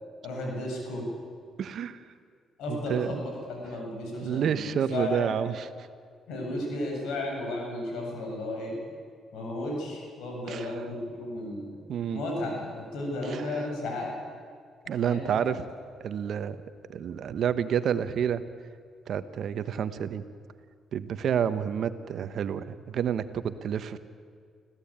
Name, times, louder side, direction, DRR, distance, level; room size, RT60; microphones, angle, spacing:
voice 1, 0.2-1.0 2.6-5.3 6.3-9.0 9.3-11.8 12.1-14.1 14.9-15.6, left 1 dB, 85° left, 0 dB, 7.6 m, -34 dB
voice 2, 1.6-2.0 2.7-3.2 4.2-5.7 10.5-10.7 11.9-12.3 13.3-13.4 14.9-15.6 16.0-16.6 16.9-18.4 19.1-20.2 20.9-24.0, right 8 dB, 65° right, 12 dB, 1.2 m, -29 dB
25.5 x 16.0 x 8.8 m, 2.1 s
cardioid pair, 90°, 0 cm